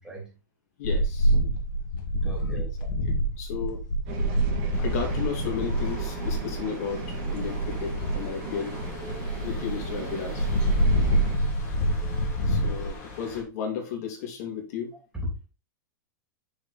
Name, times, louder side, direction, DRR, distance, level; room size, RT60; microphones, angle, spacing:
voice 1, 0.0-0.4 2.2-2.7 10.8-11.2 15.2-15.5, left 1 dB, 5° right, -3 dB, 3.2 m, -37 dB
sound 1, 0.8-12.9, right 1 dB, 75° left, 2.0 m, -27 dB
voice 2, 0.8-1.3 2.5-2.6 3.0-3.8 4.8-8.8 9.4-10.5 11.7-11.8 12.5-15.0, left 7 dB, 50° left, 2 dB, 2.7 m, -34 dB
sound 2, 4.1-11.4, right 8 dB, 45° right, 2.3 m, -39 dB
sound 3, 4.7-13.4, left 3 dB, 20° left, 2.8 m, -44 dB
6.4 x 5.3 x 4.2 m, 0.30 s
supercardioid pair, 165°, 10 cm